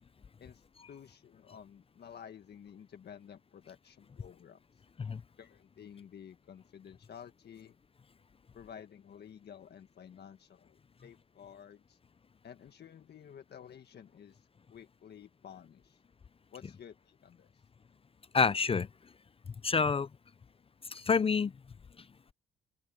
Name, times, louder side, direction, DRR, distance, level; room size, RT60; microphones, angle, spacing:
voice 1, 0.4-4.6 5.4-7.7 8.5-12.0 12.4-14.4 14.7-16.0 16.5-17.5, left 8 dB, 55° left, 1.6 m, -52 dB
voice 2, 18.3-18.9 19.6-20.1 20.9-21.5, left 5 dB, 30° left, 0.6 m, -27 dB
open air
cardioid pair, 90°, 20 cm